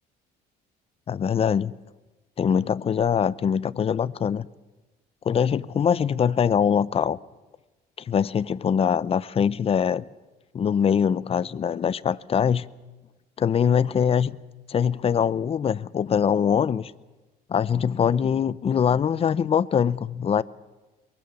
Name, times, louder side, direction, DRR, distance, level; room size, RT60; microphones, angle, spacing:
voice 1, 1.1-1.7 2.4-4.5 5.2-7.2 8.1-10.0 10.5-12.7 13.4-14.4 14.7-16.9 17.5-20.4, left 7 dB, 35° left, 0.7 m, -23 dB
22.5 x 22.5 x 7.0 m
cardioid pair, 110°, 17 cm